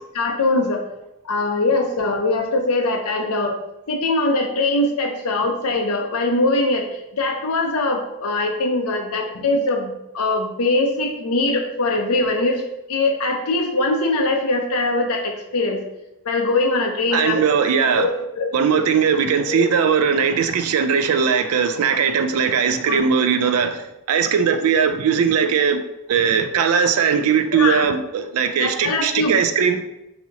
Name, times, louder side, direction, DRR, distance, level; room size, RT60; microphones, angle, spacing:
voice 1, 0.1-0.8 1.2-3.5 3.9-6.9 7.1-12.6 12.9-15.8 16.2-17.4 18.0-18.1 18.3-18.5 19.5-19.6 22.9-23.0 27.5-27.9 28.6-29.4, left 2 dB, 70° left, 3 dB, 0.6 m, -21 dB
voice 2, 17.1-18.1 18.5-25.8 26.1-29.8, right 6 dB, 70° right, 9 dB, 0.3 m, -19 dB
4.0 x 2.8 x 2.8 m, 0.89 s
head